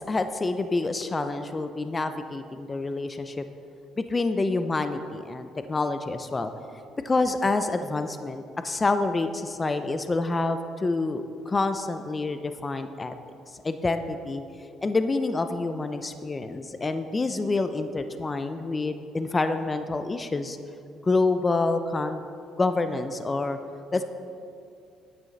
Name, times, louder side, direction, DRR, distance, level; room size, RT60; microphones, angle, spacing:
voice 1, 0.0-3.4 4.0-6.5 7.0-13.1 13.6-14.4 14.8-20.6 21.0-22.2 22.6-23.6 23.9-24.0, left 3 dB, 20° left, 9 dB, 0.5 m, -27 dB
9.8 x 8.8 x 4.1 m, 2.5 s
cardioid pair, 110°, 0 cm